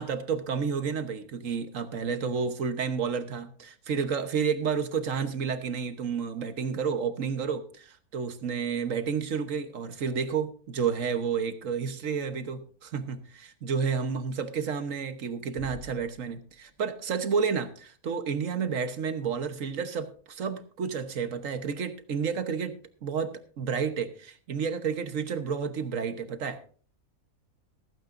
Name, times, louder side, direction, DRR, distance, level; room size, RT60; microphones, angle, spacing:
voice 1, 0.0-26.6, right 6 dB, 65° right, 9 dB, 1.4 m, -31 dB
sound 1, 15.6-17.1, left 3 dB, 80° left, 2.5 m, -49 dB
15.5 x 15.0 x 2.6 m, 0.43 s
omnidirectional pair, 1.5 m